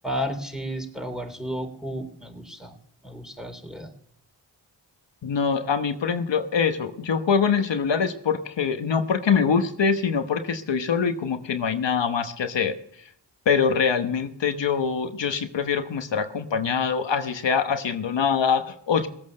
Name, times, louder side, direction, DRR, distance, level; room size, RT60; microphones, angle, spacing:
voice 1, 0.0-2.7 3.0-3.9, equal, ahead, 4 dB, 3.5 m, -32 dB
voice 2, 5.2-13.1 13.5-19.1, left 6 dB, 85° left, 8 dB, 1.1 m, -24 dB
19.0 x 8.7 x 6.5 m, 0.69 s
cardioid pair, 50°, 43 cm